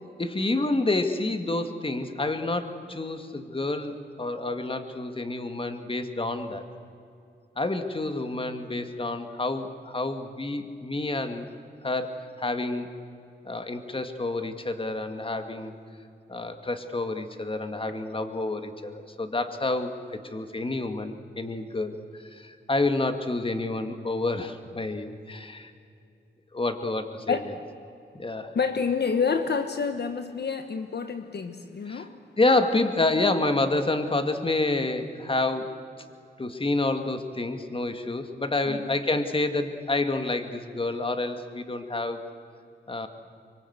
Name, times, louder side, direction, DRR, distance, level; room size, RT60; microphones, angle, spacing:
voice 1, 0.2-6.6 7.6-11.5 11.8-12.9 13.4-15.7 16.3-25.7 26.5-27.4 28.1-28.5 31.9-32.0 32.4-35.8 36.4-42.2 42.9-43.1, left 2 dB, 30° left, 2.0 m, -28 dB
voice 2, 28.5-32.2 38.7-38.8, left 5 dB, 65° left, 1.2 m, -28 dB
24.0 x 24.0 x 8.1 m
wide cardioid pair, 90°, 19 cm